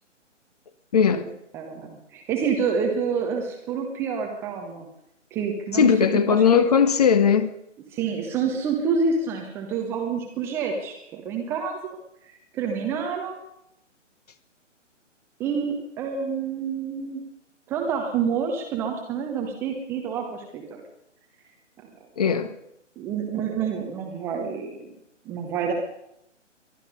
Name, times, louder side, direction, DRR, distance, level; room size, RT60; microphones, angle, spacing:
voice 1, 0.9-1.3 5.7-7.5 22.2-22.5, left 7 dB, 30° left, 1.0 m, -19 dB
voice 2, 1.5-4.9 5.3-5.9 6.3-6.7 7.9-13.4 15.4-17.2 17.7-20.8 21.8-22.0 23.0-25.0 25.2-25.7, right 6 dB, 5° right, 0.8 m, -28 dB
23.0 x 11.5 x 5.4 m
figure-of-eight pair, 135°, 38 cm